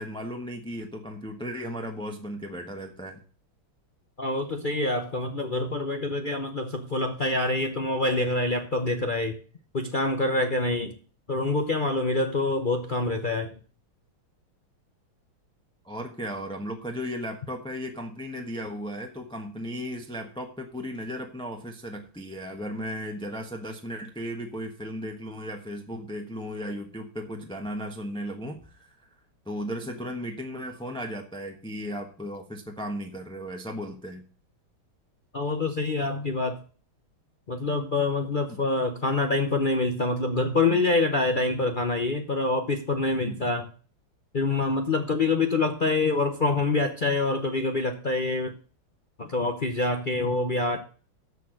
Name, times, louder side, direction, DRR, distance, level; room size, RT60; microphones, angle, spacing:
voice 1, 0.0-3.2 15.8-28.9 29.5-34.2 38.5-38.6 43.2-43.5, equal, 5° left, 3 dB, 0.8 m, -35 dB
voice 2, 4.2-9.4 9.7-11.0 11.3-13.5 35.3-36.6 37.5-43.7 44.3-48.5 49.2-50.8, left 2 dB, 50° left, 5 dB, 0.5 m, -26 dB
13.0 x 4.6 x 6.4 m, 0.40 s
omnidirectional pair, 2.2 m